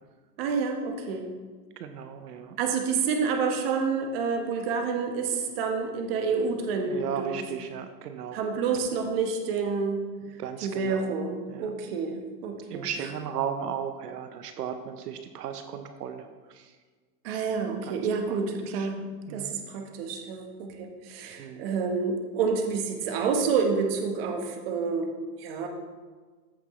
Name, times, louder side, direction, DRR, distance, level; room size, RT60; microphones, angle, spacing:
voice 1, 0.4-1.3 2.6-7.4 8.3-10.0 10.6-13.1 17.2-19.0 19.3-25.1 25.4-25.7, right 5 dB, 35° right, 3 dB, 1.1 m, -28 dB
voice 2, 1.8-2.6 6.9-8.4 10.4-11.1 11.5-11.7 12.7-16.7 17.9-18.0 18.3-18.4 18.7-18.9 19.3-19.6 21.4-21.6, right 8 dB, 70° right, 7 dB, 0.9 m, -35 dB
14.0 x 6.0 x 3.1 m, 1.4 s
supercardioid pair, 165°, 48 cm